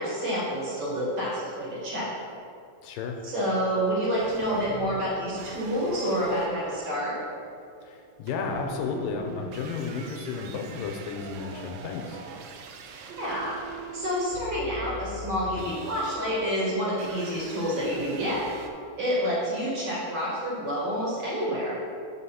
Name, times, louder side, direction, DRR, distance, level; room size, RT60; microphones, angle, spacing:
voice 1, 0.0-2.1 3.2-7.2 13.0-13.6 13.9-18.5 19.0-21.8, equal, 50° right, -7 dB, 2.5 m, -28 dB
voice 2, 2.8-3.2 7.8-12.2, left 5 dB, 85° left, 2 dB, 2.2 m, -33 dB
sound 1, 4.2-18.7, right 4 dB, 90° right, 2.4 m, -42 dB
6.4 x 5.3 x 5.7 m, 2.4 s
omnidirectional pair, 4.0 m